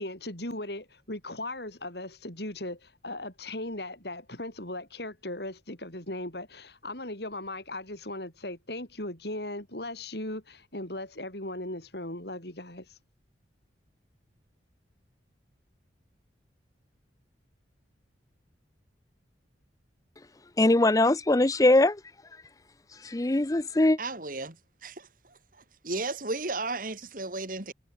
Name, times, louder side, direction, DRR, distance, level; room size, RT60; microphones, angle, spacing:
voice 1, 0.0-12.9, left 1 dB, 60° left, 6.9 m, -38 dB
voice 2, 20.6-22.0 23.0-24.0, left 2 dB, 20° left, 0.5 m, -21 dB
voice 3, 24.0-24.6 24.8-25.4 25.8-27.7, right 3 dB, 45° right, 3.3 m, -34 dB
head